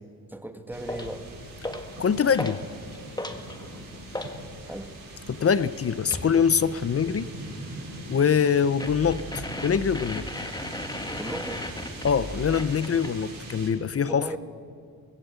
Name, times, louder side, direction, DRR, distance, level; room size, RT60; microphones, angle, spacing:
voice 1, 0.3-1.3 4.7-4.9 11.2-11.6 14.1-14.4, right 1 dB, 5° right, 7 dB, 1.5 m, -36 dB
sound 1, 0.7-13.7, right 2 dB, 60° right, 5.8 m, -41 dB
sound 2, 0.9-1.2 1.6-2.0 2.3-2.6 2.9-4.4 6.1-6.3 8.8-13.2, left 1 dB, 10° left, 1.4 m, -35 dB
voice 2, 2.0-2.6 5.3-7.3 8.1-10.3 12.0-14.3, left 7 dB, 40° left, 16 dB, 0.5 m, -24 dB
24.0 x 18.5 x 8.1 m, 2.4 s
wide cardioid pair, 155°, 37 cm